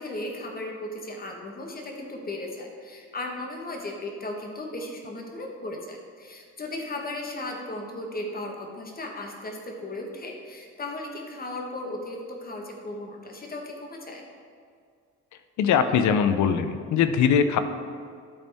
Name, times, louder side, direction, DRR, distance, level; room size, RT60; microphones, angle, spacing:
voice 1, 0.0-14.2, left 1 dB, 30° left, 1 dB, 1.4 m, -36 dB
voice 2, 15.6-17.6, left 7 dB, 70° left, 9 dB, 0.6 m, -21 dB
12.0 x 4.1 x 3.5 m, 2.2 s
cardioid pair, 90°, 30 cm